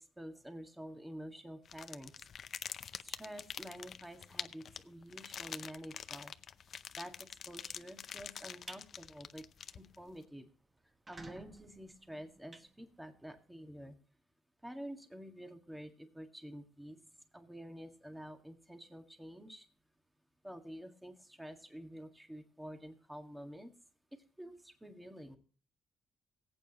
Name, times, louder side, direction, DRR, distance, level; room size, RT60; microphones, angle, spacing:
voice 1, 0.2-2.1 3.0-6.3 7.0-7.1 7.5-9.4 9.8-10.5 11.1-14.0 14.6-17.0 17.3-19.7 20.4-23.7 24.1-25.4, equal, 5° right, 5 dB, 1.8 m, -49 dB
sound 1, 1.7-10.1, left 7 dB, 55° left, 0.6 m, -46 dB
sound 2, 8.4-8.8 9.3-9.5 9.9-10.0 10.2-10.3 10.8-13.4, right 2 dB, 25° right, 1.3 m, -53 dB
19.5 x 8.8 x 3.0 m, 0.41 s
cardioid pair, 90°, 0 cm